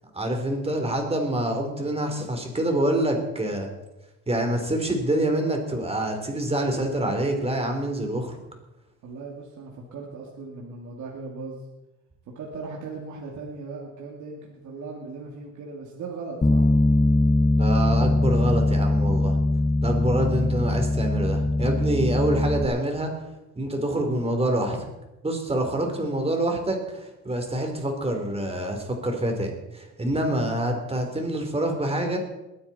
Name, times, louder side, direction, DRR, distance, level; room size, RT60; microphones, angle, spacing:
voice 1, 0.1-3.7 4.3-8.3 17.6-19.4 19.8-23.1 23.6-24.8 25.2-32.2, right 1 dB, 20° right, 4 dB, 3.2 m, -26 dB
voice 2, 9.0-11.6 12.3-16.6, right 4 dB, 75° right, -2 dB, 2.4 m, -38 dB
Bass guitar, 16.4-22.7, left 2 dB, 20° left, 1.0 m, -21 dB
21.5 x 9.7 x 4.2 m, 0.98 s
cardioid pair, 90°, 30 cm